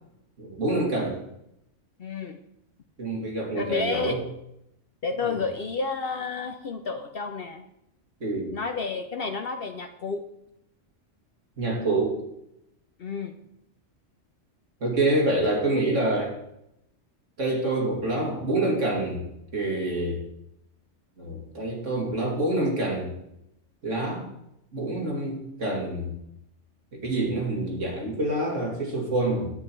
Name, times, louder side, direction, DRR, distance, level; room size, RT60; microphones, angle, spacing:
voice 1, 0.4-1.2 3.0-4.2 8.2-8.6 11.6-12.2 14.8-16.4 17.4-19.2 19.5-20.2 21.2-23.1 23.8-24.3 24.7-26.1 26.9-29.5, right 2 dB, 85° right, -1 dB, 2.8 m, -26 dB
voice 2, 2.0-2.4 3.5-4.1 5.0-7.6 8.5-10.2 13.0-13.3, left 4 dB, 55° left, 6 dB, 0.9 m, -31 dB
9.9 x 8.7 x 4.6 m, 0.82 s
omnidirectional pair, 1.2 m